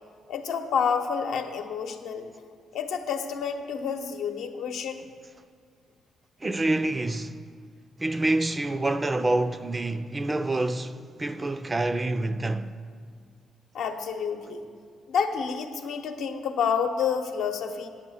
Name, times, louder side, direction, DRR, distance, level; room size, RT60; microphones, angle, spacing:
voice 1, 0.3-2.3 2.7-5.1 13.7-14.7 15.1-17.9, left 6 dB, 80° left, 0.8 m, -29 dB
voice 2, 6.4-7.3 8.0-12.7, right 2 dB, 20° right, 0.4 m, -27 dB
9.8 x 6.3 x 7.7 m
cardioid pair, 90°, 0 cm